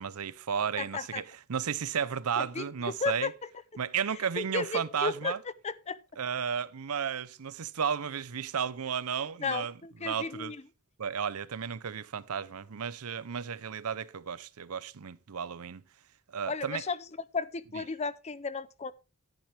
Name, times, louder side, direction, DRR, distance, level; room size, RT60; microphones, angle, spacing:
voice 1, 0.0-3.3 3.8-5.4 6.2-9.7 10.0-10.5 11.0-15.8 16.3-16.8, right 7 dB, 85° right, 0.6 m, -33 dB
voice 2, 0.8-1.2 2.5-3.3 4.4-5.3 5.6-6.0 9.4-10.6 16.5-17.0 17.3-18.9, left 4 dB, 30° left, 0.5 m, -34 dB
11.5 x 10.5 x 3.3 m
head